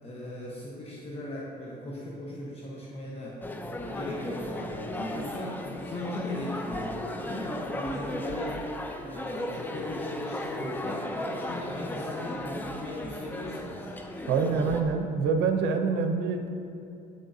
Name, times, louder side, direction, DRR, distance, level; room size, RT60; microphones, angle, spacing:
voice 1, 0.0-3.5 3.8-8.7 9.0-13.9, left 1 dB, 35° left, -4 dB, 1.0 m, -38 dB
sound 1, 3.4-14.8, left 1 dB, 10° left, 0.5 m, -35 dB
voice 2, 14.3-16.5, right 5 dB, 85° right, 6 dB, 0.6 m, -26 dB
9.2 x 6.4 x 2.7 m, 2.8 s
cardioid pair, 110°, 17 cm